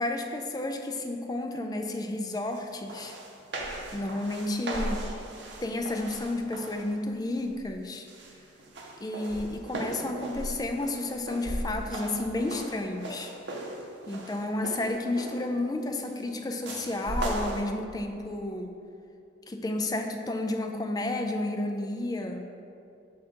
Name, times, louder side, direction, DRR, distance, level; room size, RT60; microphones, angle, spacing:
voice 1, 0.0-3.2 3.9-5.0 5.6-8.1 9.0-13.3 14.1-18.7 19.5-22.5, left 2 dB, 20° left, 4 dB, 0.3 m, -31 dB
sound 1, 2.5-2.6 2.9-6.9 7.4-7.7 8.1-15.5 16.6-17.6, right 1 dB, 65° right, 0.7 m, -37 dB
6.3 x 3.7 x 4.4 m, 2.6 s
head